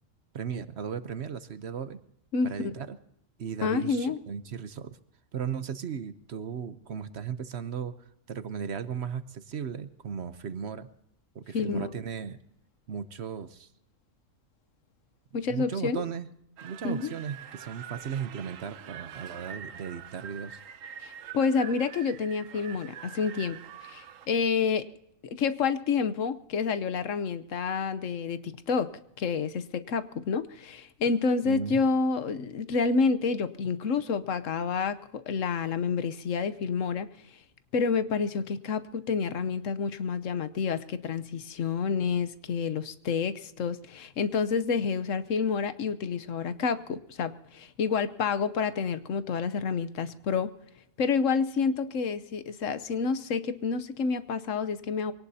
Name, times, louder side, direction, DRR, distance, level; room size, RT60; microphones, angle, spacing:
voice 1, 0.3-2.0 2.4-3.0 3.4-4.9 5.3-7.9 8.3-10.9 11.3-12.4 12.9-13.7 15.5-16.3 16.6-20.6 31.4-31.8, right 7 dB, 60° right, 12 dB, 1.0 m, -36 dB
voice 2, 2.3-2.7 3.6-4.2 11.5-11.9 15.3-16.0 16.8-17.1 21.0-24.9 25.3-28.9 29.2-37.1 37.7-50.5 51.0-55.1, left 5 dB, 75° left, 13 dB, 1.2 m, -29 dB
sound 1, 16.6-24.3, right 9 dB, 80° right, 1.1 m, -45 dB
23.5 x 18.0 x 2.8 m, 0.75 s
omnidirectional pair, 1.4 m